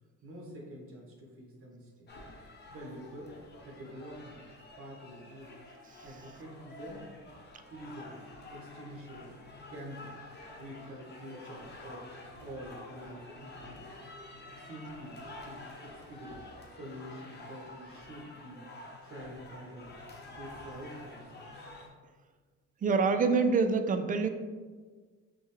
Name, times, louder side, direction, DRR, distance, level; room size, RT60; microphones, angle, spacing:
voice 1, 0.2-2.1 2.7-3.3 3.6-4.4 4.8-5.5 6.0-7.1 7.7-8.2 8.5-9.4 9.7-10.1 10.6-12.1 12.4-13.8 14.5-16.4 16.7-18.6 19.0-19.9 20.4-21.7, equal, 45° right, -1 dB, 1.3 m, -46 dB
sound 1, 2.1-21.9, left 2 dB, 35° left, 0.9 m, -49 dB
voice 2, 22.8-24.3, right 4 dB, 30° right, 8 dB, 0.4 m, -26 dB
6.2 x 2.2 x 3.2 m, 1.5 s
cardioid pair, 90°, 30 cm